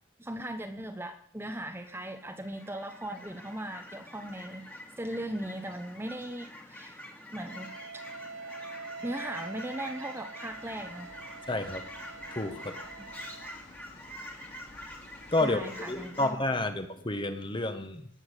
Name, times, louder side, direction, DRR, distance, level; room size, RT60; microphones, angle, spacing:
voice 1, 0.2-4.6 5.0-7.0 7.3-7.7 9.0-11.1 15.4-16.4, right 1 dB, 10° right, 6 dB, 0.9 m, -38 dB
Fowl / Chirp tweet, 1.6-16.3, equal, 10° left, 2.0 m, -46 dB
Wind instrument woodwind instrument, 7.4-13.6, right 5 dB, 75° right, 0.8 m, -45 dB
sound 1, 10.5-16.1, left 2 dB, 60° left, 2.6 m, -55 dB
voice 2, 11.5-11.9 12.3-12.8 15.3-18.1, left 2 dB, 25° left, 8 dB, 1.3 m, -30 dB
18.5 x 7.2 x 8.2 m, 0.65 s
head